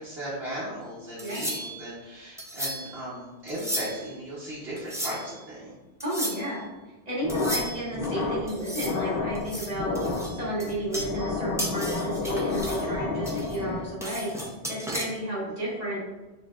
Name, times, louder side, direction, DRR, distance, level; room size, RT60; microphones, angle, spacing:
voice 1, 0.0-5.7 10.4-10.5, right 1 dB, 70° right, -9 dB, 1.5 m, -37 dB
sound 1, 1.2-1.9 2.4-3.0 3.5-4.1 4.8-5.3 6.0-6.5 7.3-8.1 8.5-9.0 9.3-11.3 11.6-12.9 13.3-15.0, equal, 5° right, 0.4 m, -35 dB
voice 2, 6.0-6.7 7.1-9.9 10.3-14.3 14.7-16.1, right 1 dB, 40° right, -7 dB, 1.7 m, -32 dB
sound 2, 7.2-14.1, left 3 dB, 65° left, 0.9 m, -31 dB
6.6 x 3.3 x 2.4 m, 1.1 s
omnidirectional pair, 1.1 m